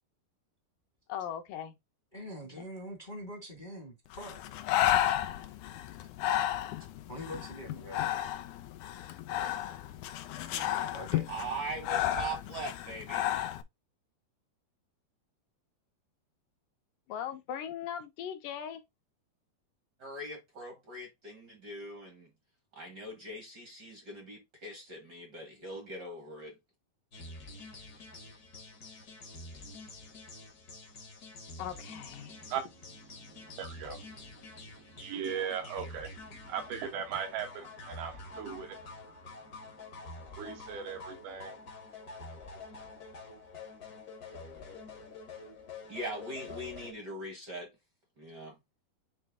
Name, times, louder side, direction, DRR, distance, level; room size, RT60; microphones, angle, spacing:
voice 1, 1.1-1.7 2.6-2.7 17.1-18.8 31.6-32.4, left 9 dB, 75° left, 2.2 m, -39 dB
voice 2, 2.1-4.4 7.1-8.1 10.5-11.2, equal, 30° left, 0.9 m, -44 dB
Breathing, 4.1-13.6, left 12 dB, 90° left, 1.7 m, -32 dB
voice 3, 11.3-13.3 20.0-22.3 22.7-26.5 45.9-47.7 48.2-48.6, right 2 dB, 50° right, 1.3 m, -41 dB
sound 1, 27.1-46.9, left 3 dB, 50° left, 1.1 m, -47 dB
voice 4, 32.2-38.8 40.4-41.6, right 7 dB, 80° right, 3.2 m, -39 dB
8.7 x 3.3 x 3.6 m
omnidirectional pair, 4.4 m